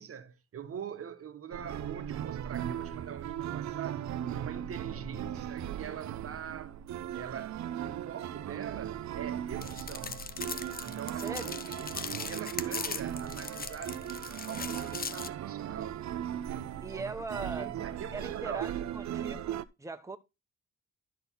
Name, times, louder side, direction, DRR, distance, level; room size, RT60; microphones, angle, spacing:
voice 1, 0.0-4.1 4.3-6.8 7.1-10.2 10.8-11.4 11.7-12.0 12.2-16.1 16.9-17.1 17.4-18.8, right 8 dB, 50° right, 1.1 m, -43 dB
sound 1, 1.5-19.6, right 10 dB, 65° right, 0.8 m, -38 dB
sound 2, 9.6-15.3, left 6 dB, 30° left, 0.8 m, -40 dB
voice 2, 11.2-11.6 16.8-17.7 18.1-20.2, right 3 dB, 10° right, 1.1 m, -40 dB
12.5 x 4.1 x 5.6 m
cardioid pair, 90°, 30 cm